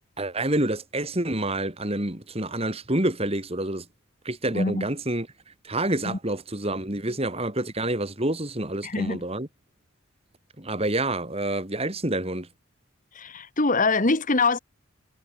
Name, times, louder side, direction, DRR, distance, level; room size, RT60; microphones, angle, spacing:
voice 1, 0.2-3.8 4.2-5.3 5.6-9.5 10.6-12.5, right 1 dB, 25° right, 3.0 m, -28 dB
voice 2, 4.5-4.9 6.0-6.2 8.8-9.2 13.1-14.6, left 3 dB, 35° left, 1.3 m, -24 dB
head